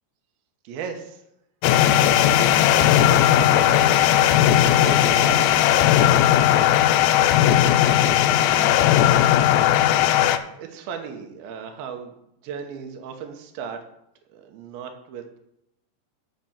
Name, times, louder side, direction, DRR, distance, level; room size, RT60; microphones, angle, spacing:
voice 1, 0.6-1.2 1.9-6.4 6.7-7.5 8.0-9.1 9.8-12.1 12.4-13.8 14.3-15.4, right 6 dB, 70° right, 4 dB, 2.4 m, -37 dB
sound 1, 1.6-10.4, left 11 dB, 80° left, 2.7 m, -17 dB
8.0 x 5.7 x 7.3 m, 0.78 s
omnidirectional pair, 5.2 m